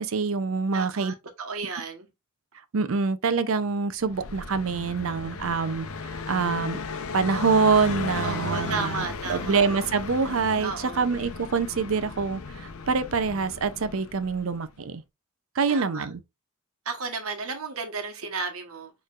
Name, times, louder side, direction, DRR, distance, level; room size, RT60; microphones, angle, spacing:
voice 1, 0.0-1.1 2.7-6.8 7.1-15.0 15.6-16.2, right 5 dB, 70° right, 0.6 m, -25 dB
voice 2, 0.7-2.1 8.2-9.6 10.6-11.1 15.7-16.1 16.8-18.9, right 4 dB, 90° right, 1.2 m, -33 dB
Car passing by, 4.0-14.6, left 4 dB, 80° left, 0.7 m, -35 dB
6.6 x 3.2 x 2.4 m
head